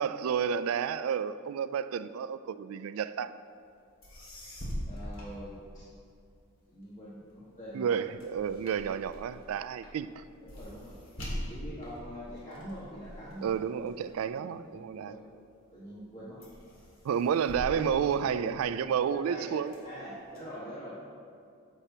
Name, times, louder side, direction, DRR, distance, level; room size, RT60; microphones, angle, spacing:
voice 1, 0.0-3.3 7.7-10.2 13.4-15.1 17.0-19.7, right 7 dB, 85° right, 15 dB, 0.3 m, -31 dB
sound 1, 3.7-3.8 4.0-6.1 6.6-15.2 15.7-16.1 16.4-18.9 19.4-20.4, equal, 75° left, 2.0 m, -43 dB
voice 2, 4.8-5.9 6.7-8.0 10.4-11.0 11.5-13.6 14.3-15.2 15.7-16.4 17.5-20.9, equal, 35° left, -10 dB, 1.5 m, -44 dB
9.9 x 7.3 x 2.8 m, 2.4 s
head